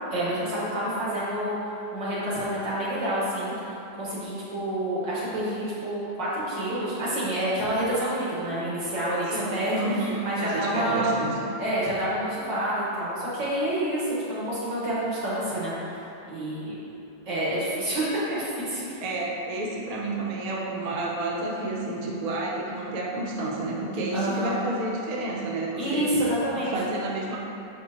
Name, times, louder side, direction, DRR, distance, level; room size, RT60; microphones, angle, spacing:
voice 1, 0.1-1.6 1.9-3.5 4.0-9.8 10.2-11.1 11.6-15.7 16.2-16.8 17.3-18.9 24.1-24.6 25.7-26.7, right 1 dB, 90° right, -8 dB, 2.4 m, -28 dB
voice 2, 9.3-11.4 19.0-26.1 26.7-27.4, right 2 dB, 60° right, -3 dB, 0.3 m, -30 dB
7.0 x 5.5 x 3.0 m, 2.8 s
omnidirectional pair, 1.9 m